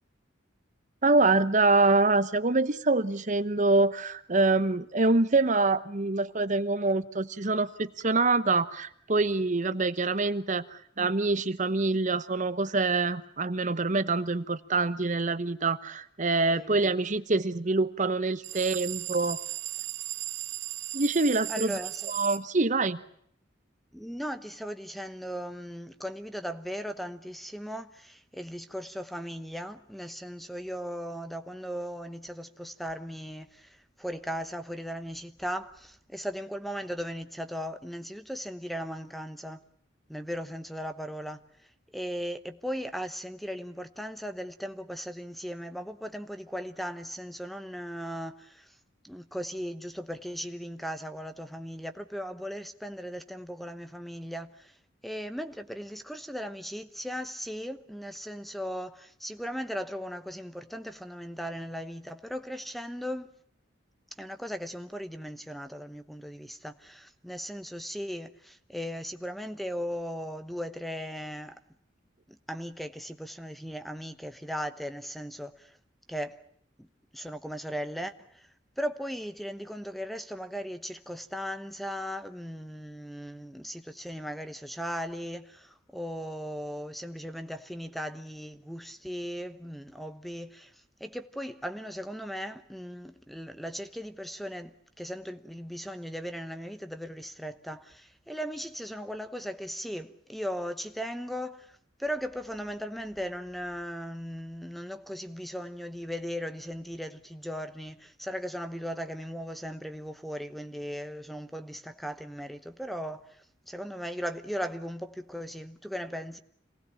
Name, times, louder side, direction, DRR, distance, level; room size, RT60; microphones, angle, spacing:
voice 1, 1.0-19.4 20.9-21.8 22.1-23.0, right 3 dB, 40° right, 1.0 m, -25 dB
sound 1, 18.4-22.4, right 15 dB, 85° right, 1.2 m, -36 dB
voice 2, 21.5-22.1 23.9-39.6 40.1-41.4 41.9-48.7 49.0-54.7 55.0-63.4 64.2-71.6 72.3-75.7 76.1-76.4 76.8-76.9 77.1-78.5 78.8-90.7 91.0-113.4 113.7-116.4, equal, ahead, 1.0 m, -37 dB
27.0 x 19.5 x 8.6 m
head